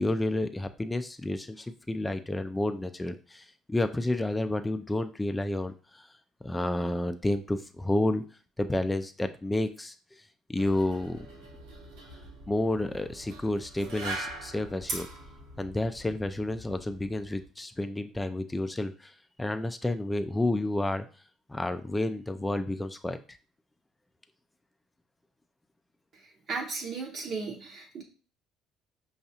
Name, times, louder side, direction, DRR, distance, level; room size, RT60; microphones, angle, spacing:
voice 1, 0.0-6.1 6.4-8.2 8.6-10.2 10.5-11.2 12.5-15.1 15.6-19.1 19.4-21.0 21.5-23.2, left 1 dB, 15° left, 8 dB, 0.4 m, -30 dB
singletary metal sculpture, 10.6-17.5, right 2 dB, 85° right, 1.0 m, -42 dB
voice 2, 26.5-28.0, right 4 dB, 55° right, -2 dB, 0.8 m, -35 dB
5.3 x 2.4 x 2.7 m, 0.37 s
supercardioid pair, 70°, 0 cm